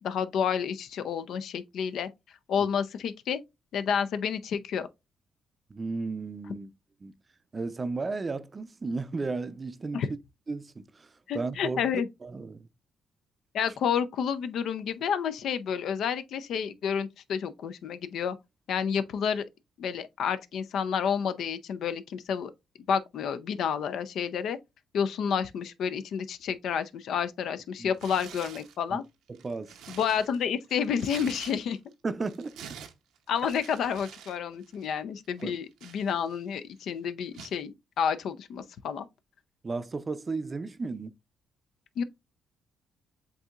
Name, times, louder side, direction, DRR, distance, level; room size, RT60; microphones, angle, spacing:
voice 1, 0.0-2.1 2.5-3.4 3.7-4.9 9.9-10.1 11.3-12.1 13.5-18.4 18.7-19.4 19.8-22.5 22.9-24.6 24.9-29.0 29.9-31.8 33.3-39.1 42.0-42.1, left 7 dB, 70° left, 0.5 m, -30 dB
voice 2, 5.7-6.7 7.0-7.1 7.5-10.0 10.5-11.1 11.3-12.7 27.8-27.9 28.9-29.0 29.4-29.7 32.0-32.6 35.4-35.5 39.6-41.1, right 3 dB, 30° right, 0.5 m, -34 dB
Tearing, 27.9-28.8 29.3-31.9 32.2-34.4 34.6-34.9 35.4-36.5 37.3-37.6, right 8 dB, 85° right, 0.7 m, -47 dB
7.9 x 2.7 x 2.4 m
cardioid pair, 90°, 0 cm